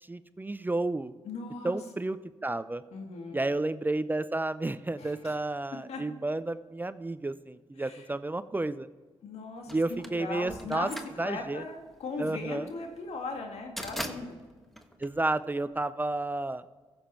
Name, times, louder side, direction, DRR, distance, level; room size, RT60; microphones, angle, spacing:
voice 1, 0.1-1.1 1.6-2.8 3.3-8.9 9.7-10.9 11.2-11.6 12.2-12.7 15.0-16.6, right 2 dB, 15° right, 15 dB, 0.4 m, -31 dB
voice 2, 1.2-1.8 2.9-3.4 5.0-5.4 5.7-6.0 7.8-8.1 9.2-14.4, left 3 dB, 70° left, 2 dB, 2.0 m, -39 dB
sound 1, 9.7-15.8, equal, ahead, 1.2 m, -42 dB
15.0 x 7.0 x 4.5 m, 1.4 s
supercardioid pair, 60°, 11 cm